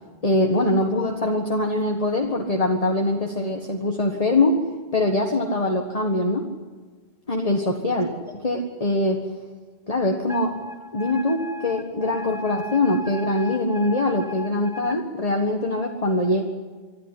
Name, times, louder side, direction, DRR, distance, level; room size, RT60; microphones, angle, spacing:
voice 1, 0.2-4.6 4.9-6.5 7.3-9.2 9.9-10.5 10.9-16.4, left 2 dB, 35° left, 1 dB, 1.6 m, -23 dB
Wind instrument woodwind instrument, 10.3-15.0, left 1 dB, 5° right, 1.1 m, -36 dB
24.5 x 13.5 x 9.9 m, 1.4 s
omnidirectional pair, 1.1 m